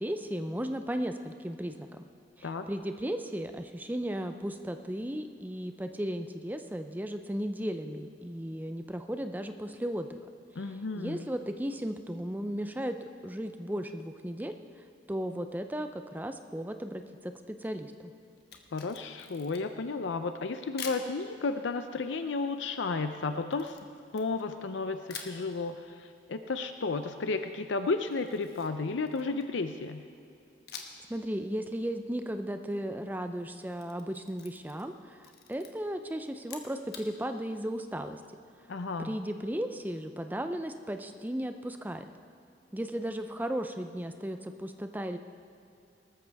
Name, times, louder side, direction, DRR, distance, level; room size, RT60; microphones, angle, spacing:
voice 1, 0.0-2.0 2.4-10.2 11.0-14.5 15.1-18.1 31.1-38.2 39.0-42.1 42.7-45.2, equal, 10° right, 7 dB, 0.5 m, -35 dB
voice 2, 10.6-11.2 18.7-23.8 24.1-30.0 38.7-39.1, left 3 dB, 90° left, 8 dB, 0.6 m, -33 dB
Camera, 18.4-19.8 20.8-21.1 23.5-24.7 25.1-25.4 28.1-29.6 30.7-31.1 31.4-31.5 33.5-34.9 35.2-35.7 36.4-37.1, left 6 dB, 60° left, 1.2 m, -46 dB
19.5 x 13.5 x 3.5 m, 2.7 s
head